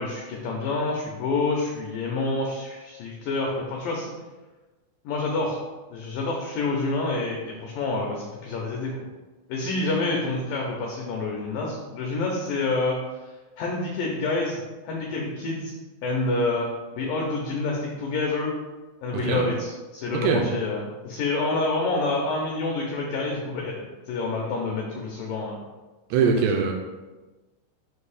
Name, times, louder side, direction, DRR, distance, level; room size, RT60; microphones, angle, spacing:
voice 1, 0.0-4.1 5.1-5.6 5.9-9.0 9.5-13.0 13.6-14.6 14.9-15.7 16.0-16.7 17.0-18.5 19.0-25.6 26.2-26.5, left 3 dB, 85° left, -1 dB, 1.9 m, -28 dB
voice 2, 19.1-19.5 20.1-20.4 26.1-26.7, right 5 dB, 85° right, 1 dB, 2.6 m, -22 dB
7.7 x 2.6 x 4.8 m, 1.2 s
omnidirectional pair, 4.9 m